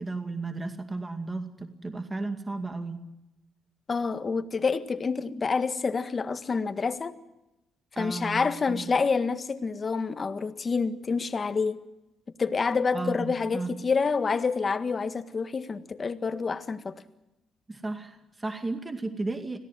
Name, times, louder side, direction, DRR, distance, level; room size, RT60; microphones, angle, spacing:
voice 1, 0.0-3.1 8.0-8.9 12.9-13.8 17.7-19.6, right 3 dB, 20° right, 2.2 m, -34 dB
voice 2, 3.9-7.1 8.0-11.8 12.4-16.9, left 4 dB, 35° left, 1.7 m, -28 dB
26.0 x 17.5 x 7.6 m
cardioid pair, 90°, 0 cm